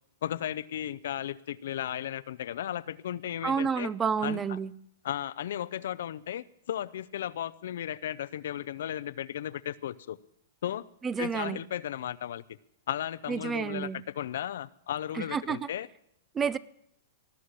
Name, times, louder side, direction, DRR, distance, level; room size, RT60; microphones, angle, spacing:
voice 1, 0.2-3.9 4.2-4.4 5.0-10.2 10.6-10.8 11.2-12.4 12.9-15.9, left 11 dB, 75° left, 16 dB, 0.6 m, -35 dB
voice 2, 3.4-4.7 11.0-11.6 13.3-14.0 15.1-15.7 16.3-16.6, right 6 dB, 20° right, 20 dB, 0.5 m, -30 dB
18.5 x 6.4 x 9.8 m, 0.71 s
hypercardioid pair, 130°, 0 cm